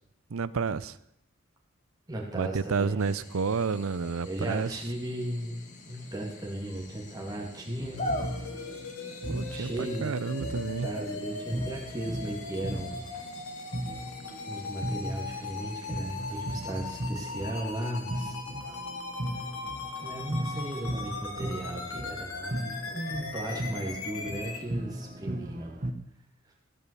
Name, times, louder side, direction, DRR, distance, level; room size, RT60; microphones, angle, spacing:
voice 1, 0.3-1.0 2.3-4.7 9.3-10.9, right 5 dB, 75° right, 17 dB, 0.6 m, -30 dB
voice 2, 2.1-3.2 4.2-8.0 9.5-10.2 10.8-13.1 14.5-18.4 20.0-25.8, right 1 dB, 20° right, -1 dB, 2.5 m, -36 dB
sound 1, 3.0-17.0, left 1 dB, 35° left, 1.7 m, -44 dB
sound 2, 7.8-13.4 13.7-25.9, right 1 dB, 35° right, 1.0 m, -38 dB
sound 3, 8.0-24.6, left 3 dB, 85° left, 1.9 m, -39 dB
16.5 x 5.7 x 8.3 m, 0.78 s
head